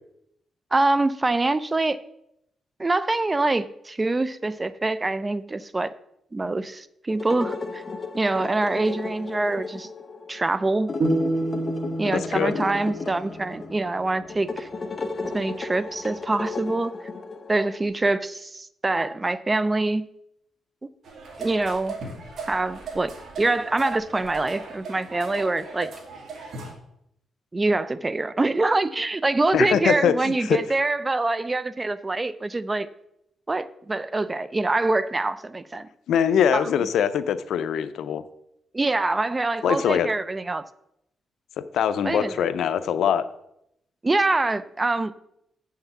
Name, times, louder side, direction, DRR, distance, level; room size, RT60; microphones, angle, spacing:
voice 1, 0.7-2.0 2.8-5.9 6.3-7.8 8.1-9.9 10.3-10.9 12.0-14.7 15.3-16.9 17.5-20.0 20.8-20.9 21.4-22.0 22.5-23.1 23.4-25.9 27.5-32.9 33.5-35.9 36.5-36.7 38.7-40.6 42.0-42.5 44.0-45.1, right 2 dB, 25° right, 15 dB, 0.5 m, -25 dB
sound 1, 7.1-17.9, left 4 dB, 35° left, 1.0 m, -34 dB
sound 2, 11.0-14.1, right 2 dB, 50° right, 1.3 m, -29 dB
voice 2, 12.1-12.6 29.5-30.6 36.1-38.2 39.6-40.1 41.7-43.2, left 8 dB, 85° left, 13 dB, 0.6 m, -23 dB
sound 3, 21.0-26.7, right 4 dB, 65° right, 2.3 m, -38 dB
7.9 x 5.8 x 7.1 m, 0.78 s
cardioid pair, 95°, 0 cm